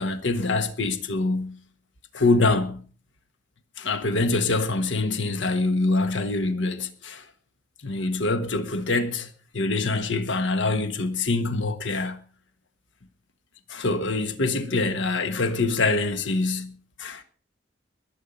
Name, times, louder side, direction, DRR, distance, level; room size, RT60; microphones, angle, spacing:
voice 1, 0.0-1.6 2.1-2.8 3.8-7.2 7.8-9.3 9.5-12.2 13.7-17.2, left 3 dB, 70° left, 1.4 m, -25 dB
21.5 x 8.6 x 5.4 m
head